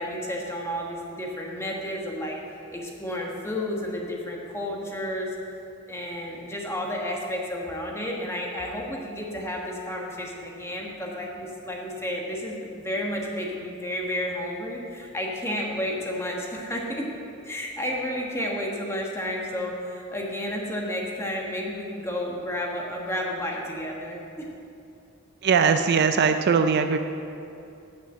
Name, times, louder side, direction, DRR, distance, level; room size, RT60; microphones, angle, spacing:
voice 1, 0.0-2.4 2.7-5.3 5.9-17.1 17.4-24.5, left 1 dB, 10° left, -1 dB, 1.3 m, -31 dB
voice 2, 25.4-27.0, right 6 dB, 50° right, 7 dB, 0.4 m, -20 dB
8.5 x 6.6 x 7.5 m, 2.7 s
head